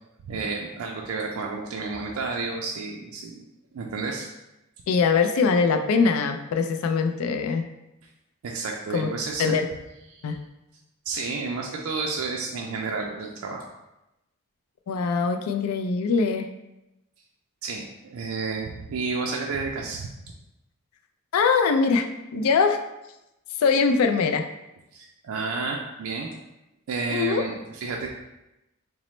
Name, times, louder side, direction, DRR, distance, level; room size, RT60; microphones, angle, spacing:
voice 1, 0.2-3.4 3.7-4.3 8.4-9.6 10.1-10.4 11.1-13.6 17.6-17.9 18.1-20.1 24.9-26.3 26.9-28.1, right 4 dB, 75° right, 0 dB, 0.4 m, -31 dB
voice 2, 4.9-7.7 8.9-9.1 9.4-9.7 10.2-10.4 14.9-16.5 21.3-22.1 22.3-22.8 23.6-24.4 27.1-27.4, left 5 dB, 75° left, 6 dB, 0.3 m, -22 dB
4.0 x 2.0 x 3.1 m, 0.93 s
head